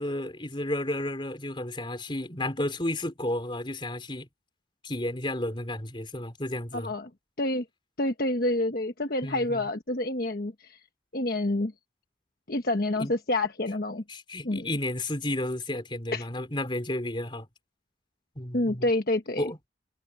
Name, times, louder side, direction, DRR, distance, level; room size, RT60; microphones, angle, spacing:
voice 1, 0.0-4.3 4.8-6.9 9.2-9.6 13.0-13.1 14.1-17.5 18.4-18.9 19.4-19.6, left 1 dB, 25° left, 3.8 m, -32 dB
voice 2, 6.7-7.1 7.4-7.6 8.0-10.8 11.1-11.7 12.5-14.0 14.4-14.7 16.1-16.3 18.5-19.5, left 1 dB, 55° left, 1.2 m, -28 dB
head